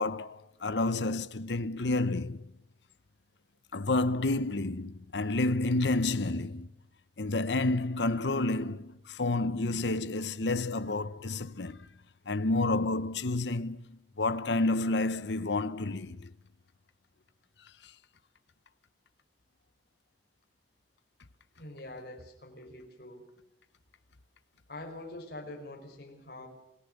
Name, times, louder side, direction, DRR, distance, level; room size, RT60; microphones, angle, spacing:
voice 1, 0.0-2.5 3.7-6.7 7.2-11.8 12.3-16.3 17.8-17.9, left 2 dB, 75° left, 0.9 m, -30 dB
voice 2, 21.6-23.2 24.7-26.5, left 1 dB, 60° left, 5.0 m, -44 dB
28.0 x 17.5 x 6.6 m
head